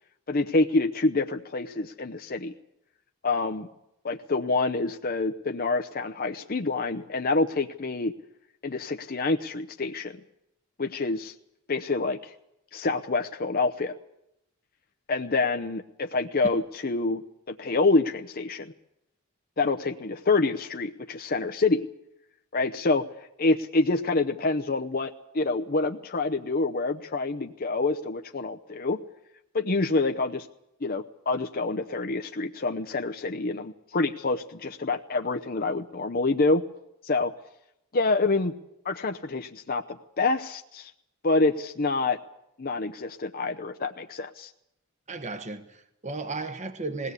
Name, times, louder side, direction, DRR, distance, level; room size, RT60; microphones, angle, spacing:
voice 1, 0.3-2.5 3.2-3.7 4.0-8.1 8.6-10.2 10.8-11.3 11.7-12.3 12.7-13.9 15.1-17.2 17.5-18.7 19.6-21.9 22.5-29.0 29.5-30.5 30.8-36.6 37.0-37.3 37.9-38.5 38.8-40.9 41.2-42.2 42.6-44.5, left 3 dB, 40° left, 0.7 m, -27 dB
voice 2, 45.1-47.1, right 3 dB, 30° right, 1.2 m, -35 dB
21.0 x 17.0 x 8.3 m
head